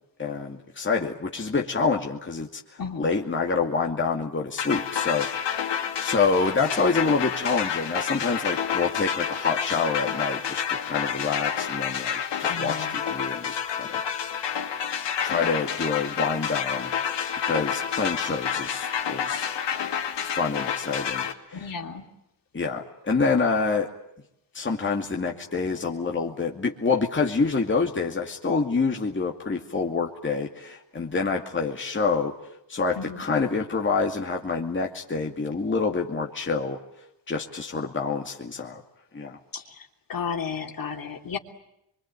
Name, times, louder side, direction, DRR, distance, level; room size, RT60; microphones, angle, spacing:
voice 1, 0.2-2.6 3.0-14.0 15.2-17.2 17.4-19.4 20.3-21.7 22.5-23.9 24.5-32.3 32.7-36.8 37.3-38.8 39.1-39.4, left 4 dB, 25° left, 1 dB, 2.5 m, -27 dB
sound 1, 4.6-21.3, left 8 dB, 70° left, 2.7 m, -29 dB
voice 2, 12.5-12.9 21.5-22.0 33.0-33.2 39.5-39.6 40.1-41.4, left 6 dB, 50° left, 3 dB, 3.3 m, -33 dB
24.0 x 24.0 x 9.1 m, 0.82 s
cardioid pair, 80°, 44 cm